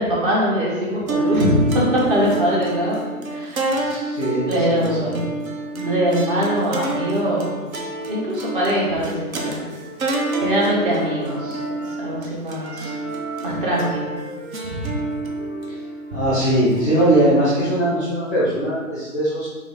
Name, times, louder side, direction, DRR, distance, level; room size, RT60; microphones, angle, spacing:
voice 1, 0.0-1.6 2.1-3.0 3.3-3.7 4.5-5.2 5.7-7.5 8.1-9.7 10.4-11.6 12.0-12.9 13.4-14.1 14.6-14.9, equal, 35° right, -5 dB, 1.3 m, -22 dB
sound 1, 1.1-17.5, right 2 dB, 70° right, 0.9 m, -28 dB
voice 2, 3.7-5.4 16.1-19.5, right 1 dB, 10° left, -8 dB, 0.5 m, -21 dB
Wind instrument woodwind instrument, 9.1-12.1 12.5-16.2, right 2 dB, 20° right, 1.0 m, -39 dB
3.7 x 3.6 x 3.7 m, 1.3 s
figure-of-eight pair, 135°, 43 cm